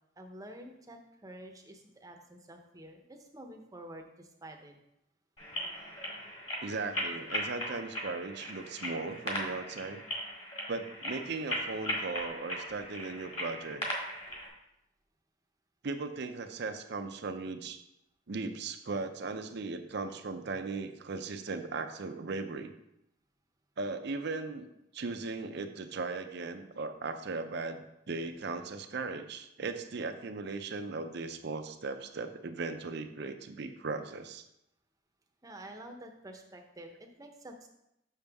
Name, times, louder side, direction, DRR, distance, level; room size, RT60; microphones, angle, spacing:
voice 1, 0.2-4.7 35.4-37.7, right 1 dB, 20° right, 3 dB, 0.8 m, -49 dB
sound 1, 5.4-14.5, left 1 dB, 30° left, 1.8 m, -38 dB
voice 2, 6.6-10.0 10.7-13.8 15.8-17.8 18.3-22.7 23.8-24.7 24.9-34.5, right 3 dB, 60° right, 8 dB, 0.6 m, -37 dB
6.8 x 6.4 x 3.5 m, 0.83 s
head